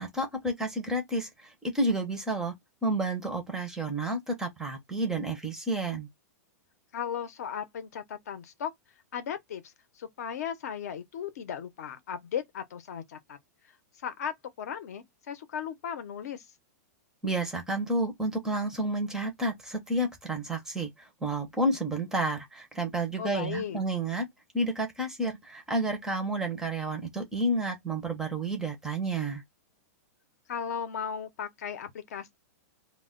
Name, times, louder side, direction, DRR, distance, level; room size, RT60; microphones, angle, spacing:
voice 1, 0.0-1.5 1.7-2.5 2.8-6.1 17.2-24.3 24.5-29.4, right 1 dB, 5° right, 0.5 m, -30 dB
voice 2, 6.9-8.7 9.1-13.4 14.0-16.5 23.2-23.8 30.5-32.3, left 8 dB, 65° left, 0.6 m, -36 dB
2.1 x 2.1 x 3.6 m
supercardioid pair, 165°, 9 cm